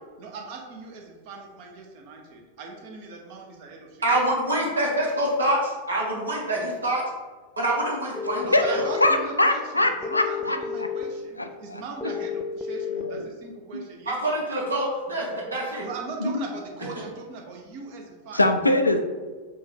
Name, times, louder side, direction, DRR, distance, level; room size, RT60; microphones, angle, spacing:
voice 1, 0.2-4.1 8.4-14.4 15.8-18.4, right 3 dB, 45° right, 1 dB, 0.9 m, -39 dB
voice 2, 4.0-7.0 7.6-8.8 14.1-15.8, right 1 dB, 75° right, -3 dB, 1.3 m, -26 dB
sound 1, 8.1-9.1 10.0-11.0 12.0-13.0, left 6 dB, 15° left, 0.5 m, -31 dB
voice 3, 9.0-10.6 11.4-11.8 12.9-13.2 16.2-16.4 18.3-19.0, left 1 dB, 85° left, 6 dB, 0.4 m, -22 dB
4.5 x 2.5 x 4.5 m, 1.4 s
figure-of-eight pair, 90°, 0 cm